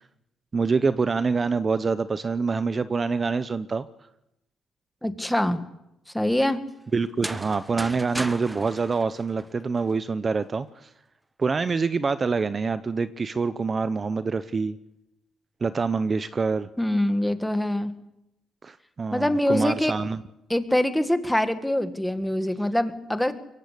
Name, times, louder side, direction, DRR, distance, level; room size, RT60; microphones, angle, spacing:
voice 1, 0.5-3.9 6.9-10.9 11.4-14.8 15.6-16.7 18.6-20.2, right 4 dB, 35° right, 13 dB, 0.7 m, -26 dB
voice 2, 5.0-5.6 6.1-6.6 16.8-17.9 19.1-19.9 20.5-23.4, left 1 dB, 5° left, 9 dB, 1.8 m, -24 dB
sound 1, 7.0-9.9, right 1 dB, 10° right, 1.0 m, -36 dB
23.0 x 17.0 x 8.4 m, 0.88 s
cardioid pair, 90°, 0 cm